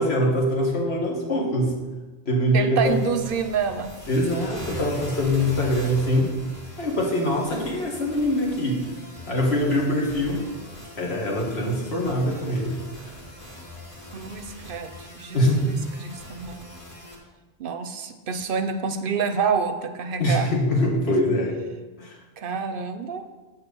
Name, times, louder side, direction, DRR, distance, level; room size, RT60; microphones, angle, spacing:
voice 1, 0.0-1.7 2.3-3.0 4.1-6.3 6.8-8.8 9.3-10.5 11.0-12.8 15.3-15.8 20.2-21.6 22.0-22.2, equal, 75° left, -2 dB, 1.9 m, -23 dB
voice 2, 2.5-3.9 14.1-16.7 17.6-20.5 21.1-21.2 22.4-23.3, right 6 dB, 60° right, 9 dB, 0.7 m, -28 dB
sound 1, 2.9-17.2, left 1 dB, 30° left, 2.3 m, -41 dB
8.2 x 4.4 x 6.8 m, 1.2 s
omnidirectional pair, 1.1 m